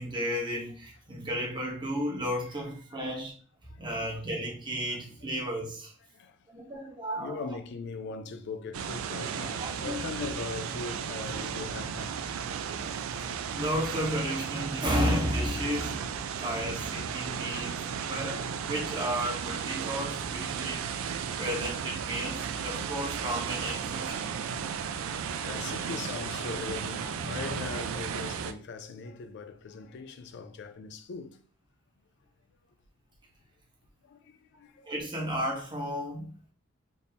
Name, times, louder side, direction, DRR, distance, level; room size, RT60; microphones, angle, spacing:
voice 1, 0.0-3.3 3.8-5.9 6.5-7.4 9.6-10.0 13.5-16.1 16.4-20.8 21.4-24.3 34.8-36.3, equal, 20° right, 1.0 m, -33 dB
voice 2, 3.7-4.1 6.1-6.4 7.2-12.2 16.3-16.4 17.1-17.4 19.8-20.0 25.2-31.4 34.0-34.9, left 4 dB, 55° left, 0.3 m, -40 dB
sound 1, 8.7-28.5, right 7 dB, 70° right, 0.3 m, -34 dB
3.5 x 2.7 x 2.8 m
head